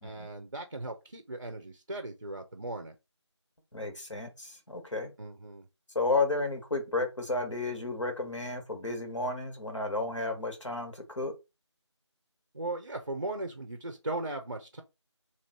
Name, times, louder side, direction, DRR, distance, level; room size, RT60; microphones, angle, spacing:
voice 1, 0.0-3.0 5.2-5.7 12.5-14.8, right 2 dB, 45° right, 0.6 m, -38 dB
voice 2, 3.7-5.1 5.9-11.3, left 3 dB, 80° left, 1.6 m, -32 dB
3.0 x 2.6 x 4.4 m
figure-of-eight pair, 170°, 15 cm